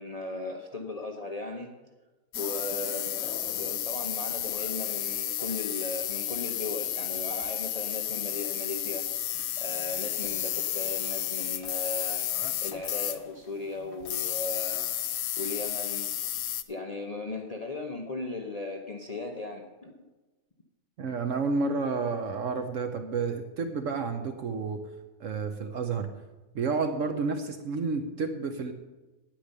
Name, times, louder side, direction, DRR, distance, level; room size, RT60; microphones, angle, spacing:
voice 1, 0.0-1.7 2.4-9.1 9.6-12.3 12.6-14.9 15.4-16.1 16.7-19.9, left 2 dB, 30° left, 2 dB, 0.9 m, -37 dB
sound 1, 2.3-13.3 13.9-16.6, left 11 dB, 85° left, 1.1 m, -32 dB
voice 2, 21.0-24.8 25.2-26.1 26.5-28.7, right 4 dB, 65° right, 7 dB, 1.2 m, -30 dB
9.9 x 8.9 x 6.6 m, 1.1 s
omnidirectional pair, 1.4 m